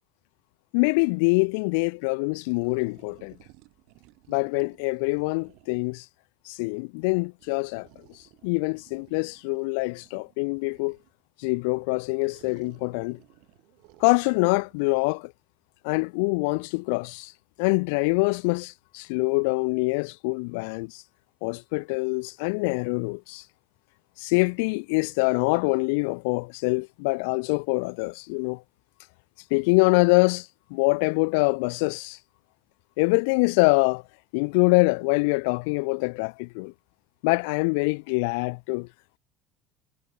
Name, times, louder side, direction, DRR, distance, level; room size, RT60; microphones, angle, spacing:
voice 1, 0.7-3.3 4.3-6.0 6.5-7.9 8.4-11.0 11.4-13.2 14.0-15.3 15.8-17.3 17.6-21.0 21.4-23.4 24.2-28.6 29.5-32.2 33.0-34.0 34.3-36.7 37.2-38.9, left 31 dB, 80° left, 0.3 m, -24 dB
sound 1, 2.6-6.0 7.4-11.2 12.2-15.1, right 26 dB, 60° right, 7.5 m, -57 dB
cardioid pair, 170°, 0 cm